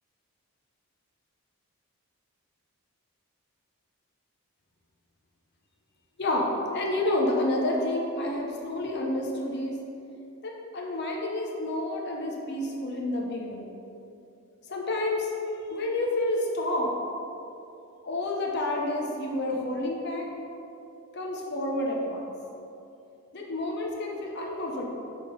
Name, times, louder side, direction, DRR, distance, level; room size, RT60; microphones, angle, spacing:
voice 1, 6.7-9.7 10.4-13.7 14.7-15.3 15.7-16.9 18.0-20.3 21.1-22.3 23.3-24.9, left 1 dB, 50° left, -1 dB, 0.8 m, -29 dB
6.6 x 3.6 x 5.3 m, 2.7 s
head